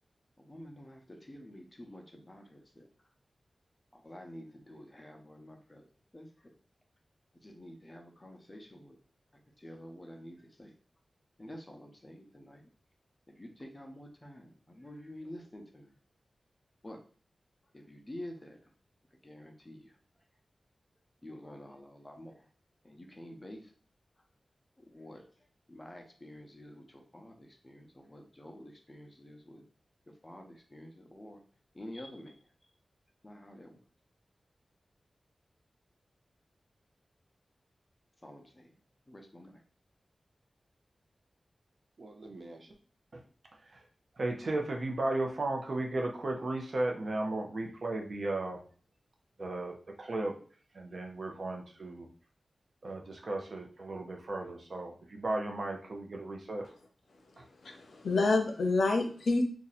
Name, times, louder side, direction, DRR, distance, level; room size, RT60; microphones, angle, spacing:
voice 1, 0.4-2.9 3.9-5.9 6.1-6.5 7.4-9.0 9.6-10.7 11.4-12.6 13.3-15.9 16.8-17.0 17.7-18.7 19.2-19.9 21.2-22.5 22.8-23.7 24.8-25.3 25.7-29.6 30.1-31.4 31.7-32.4 33.2-33.8 38.2-38.8 39.1-39.6, left 1 dB, 20° left, 3 dB, 0.7 m, -49 dB
voice 2, 42.0-42.7 43.1-43.2 43.7-43.8 44.2-48.6 49.4-50.3 50.7-52.1 52.8-56.7 57.4-57.5, right 2 dB, 60° right, 2 dB, 0.7 m, -35 dB
voice 3, 57.6-59.4, left 3 dB, 85° left, 3 dB, 0.6 m, -28 dB
2.7 x 2.4 x 4.1 m, 0.42 s
wide cardioid pair, 85°, 0 cm